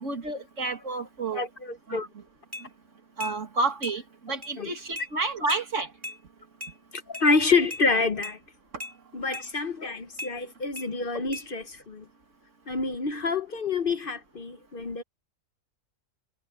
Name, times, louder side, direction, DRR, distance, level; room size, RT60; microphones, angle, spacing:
voice 1, 0.0-1.4 1.9-2.0 3.2-5.9, right 3 dB, 70° right, 2.7 m, -30 dB
voice 2, 1.3-2.1 4.6-4.7 6.9-8.4 9.1-12.0 12.7-15.0, left 4 dB, 45° left, 1.1 m, -27 dB
sound 1, 2.5-2.7 3.2-3.4 3.8-4.0 4.4-4.5 5.0-5.1 5.5-5.6 6.0-6.2 6.6-6.7 7.1-7.3 7.7-7.8 8.2-8.4 8.8-8.9 9.3-9.5 10.2-10.3 10.8-10.9 11.3-11.5, left 1 dB, 15° right, 5.6 m, -37 dB
omnidirectional pair, 1.3 m